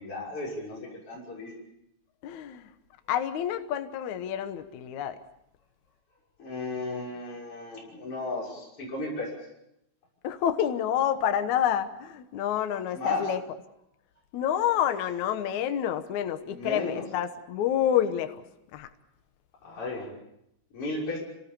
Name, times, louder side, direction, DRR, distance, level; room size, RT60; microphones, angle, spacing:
voice 1, 0.0-1.5 6.4-9.3 12.9-13.3 16.4-17.1 19.6-20.1 20.7-21.2, left 2 dB, 30° left, -4 dB, 6.9 m, -34 dB
voice 2, 2.2-2.7 3.1-5.2 10.2-13.4 14.3-18.4 18.7-18.9, left 10 dB, 70° left, 9 dB, 1.8 m, -28 dB
27.5 x 18.5 x 6.9 m, 0.82 s
omnidirectional pair, 5.0 m